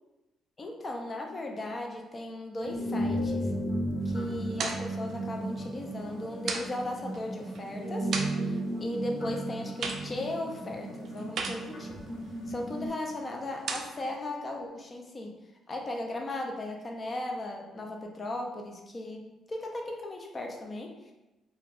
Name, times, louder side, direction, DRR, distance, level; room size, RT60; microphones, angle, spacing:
voice 1, 0.6-3.5 4.0-8.1 8.4-12.0 12.5-15.4 15.7-21.1, left 1 dB, 35° left, 1 dB, 0.5 m, -37 dB
sound 1, 2.6-12.9, right 1 dB, 65° left, 1.1 m, -34 dB
sound 2, 4.0-14.1, right 4 dB, 70° right, 0.3 m, -41 dB
2.4 x 2.2 x 3.3 m, 1.0 s
cardioid pair, 90°, 0 cm